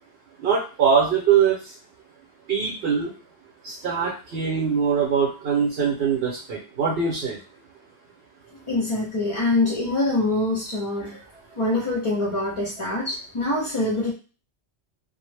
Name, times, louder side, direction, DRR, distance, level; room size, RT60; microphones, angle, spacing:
voice 1, 0.4-1.6 2.5-3.1 3.6-7.4, right 6 dB, 65° right, -3 dB, 0.8 m, -22 dB
voice 2, 8.7-11.2 11.6-14.1, left 2 dB, 40° left, -4 dB, 0.5 m, -24 dB
2.0 x 2.0 x 3.2 m, 0.35 s
omnidirectional pair, 1.1 m